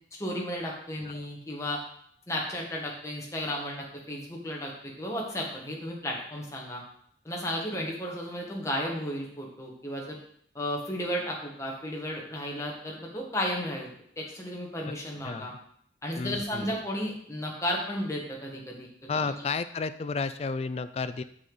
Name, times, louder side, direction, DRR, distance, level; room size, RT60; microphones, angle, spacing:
voice 1, 0.2-1.8 2.3-6.8 7.2-10.2 10.5-15.5 16.0-18.9 19.1-19.4, equal, 15° left, -1 dB, 1.4 m, -34 dB
voice 2, 16.2-16.7 19.1-21.2, left 4 dB, 35° left, 13 dB, 0.3 m, -32 dB
6.9 x 6.3 x 3.9 m, 0.67 s
head